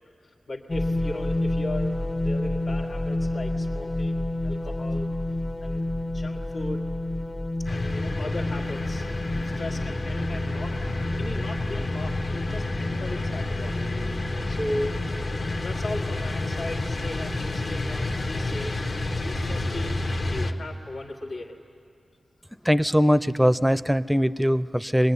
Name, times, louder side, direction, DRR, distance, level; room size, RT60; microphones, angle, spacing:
voice 1, 0.2-5.1 5.6-5.8 6.1-6.9 7.6-15.0 15.6-18.8 19.2-21.6, left 1 dB, 80° left, -3 dB, 1.6 m, -37 dB
sound 1, 0.7-20.3, left 1 dB, 30° left, 0.7 m, -31 dB
sound 2, 7.7-20.5, left 2 dB, 60° left, 1.3 m, -30 dB
voice 2, 22.6-25.1, equal, 5° right, 15 dB, 0.5 m, -21 dB
24.0 x 21.0 x 9.7 m, 2.4 s
wide cardioid pair, 80°, 0 cm